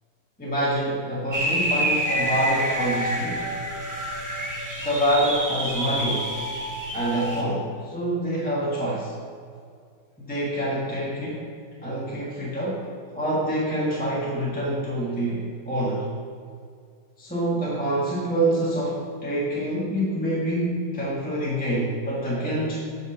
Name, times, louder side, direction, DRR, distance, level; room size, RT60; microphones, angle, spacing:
voice 1, 0.4-3.5 4.8-6.3 6.9-9.1 10.3-11.5 11.8-12.9 13.1-16.0 17.2-22.8, right 1 dB, 5° left, -7 dB, 1.3 m, -26 dB
sound 1, 1.3-7.4, right 1 dB, 15° right, 0.8 m, -28 dB
8.1 x 5.2 x 6.9 m, 2.2 s
omnidirectional pair, 1.6 m